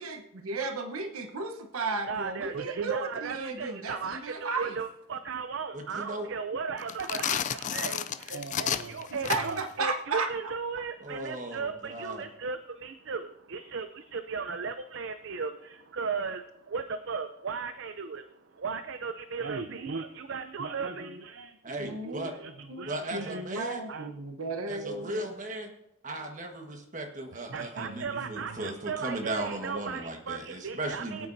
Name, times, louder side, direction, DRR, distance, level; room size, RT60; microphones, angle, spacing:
voice 1, 0.0-4.7 9.3-10.3 21.8-22.3 22.7-25.2, right 3 dB, 75° right, 5 dB, 1.0 m, -34 dB
voice 2, 1.9-23.4 23.9-24.1 27.3-31.3, right 5 dB, 55° right, 9 dB, 0.5 m, -36 dB
voice 3, 5.7-6.3 11.0-12.2 21.6-22.3 22.8-23.8 24.7-25.7 26.0-31.3, right 1 dB, 35° right, 2 dB, 1.5 m, -37 dB
sound 1, 6.8-9.7, left 9 dB, 35° left, 0.3 m, -32 dB
22.0 x 8.8 x 2.7 m, 0.87 s
head